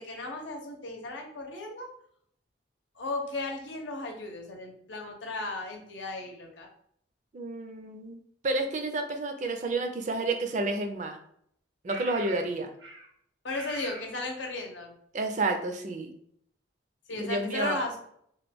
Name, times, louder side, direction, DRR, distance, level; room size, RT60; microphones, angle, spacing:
voice 1, 0.0-1.9 3.0-6.7 13.4-14.9 17.1-18.0, left 2 dB, 80° left, 2 dB, 0.7 m, -35 dB
voice 2, 7.3-8.2 8.4-11.2 11.8-12.7 15.1-16.1 17.1-17.8, right 2 dB, 40° right, 6 dB, 0.4 m, -30 dB
sound 1, 10.4-10.5 11.9-12.5 12.8-13.1 13.5-14.1, right 3 dB, 90° right, 1.1 m, -42 dB
3.0 x 2.2 x 3.4 m, 0.68 s
head